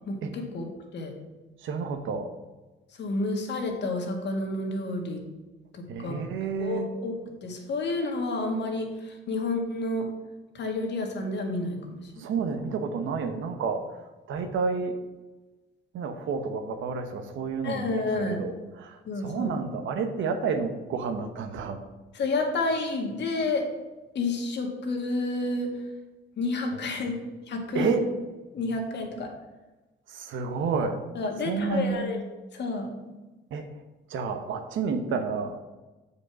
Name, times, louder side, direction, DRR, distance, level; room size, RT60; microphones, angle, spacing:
voice 1, 0.1-1.1 3.0-5.2 5.7-6.2 6.6-7.1 7.4-10.1 10.5-12.0 17.6-18.4 19.1-19.5 22.1-23.6 24.2-25.7 26.4-27.1 27.5-27.9 28.5-29.3 31.2-32.2 32.5-32.9, left 2 dB, 60° left, 2 dB, 1.8 m, -30 dB
voice 2, 1.6-2.3 5.9-6.9 12.2-13.9 14.3-15.0 15.9-21.8 26.7-27.2 27.7-28.0 30.1-31.0 31.4-32.1 33.5-33.8 34.1-35.6, right 5 dB, 75° right, 7 dB, 0.9 m, -30 dB
6.8 x 5.2 x 6.1 m, 1.1 s
cardioid pair, 90°, 20 cm